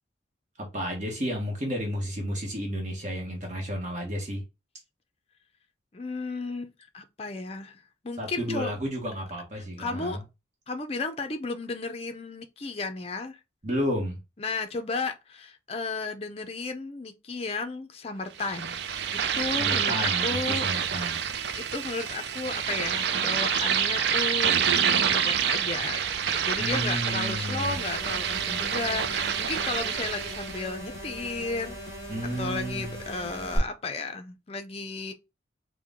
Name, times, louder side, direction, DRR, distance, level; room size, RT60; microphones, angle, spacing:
voice 1, 0.6-4.4 8.2-10.2 13.6-14.2 19.6-21.2 26.6-27.8 32.1-33.0, equal, 40° right, 1.1 m, -32 dB
voice 2, 5.9-8.7 9.8-10.2 10.7-13.4 14.4-18.8 19.3-20.7 21.5-26.0 26.3-31.8 32.4-35.1, left 3 dB, 30° left, 0.5 m, -34 dB
sound 1, 18.4-30.6, right 7 dB, 60° right, 0.4 m, -27 dB
sound 2, 27.6-33.6, equal, 15° right, 2.6 m, -39 dB
4.6 x 2.1 x 3.5 m
head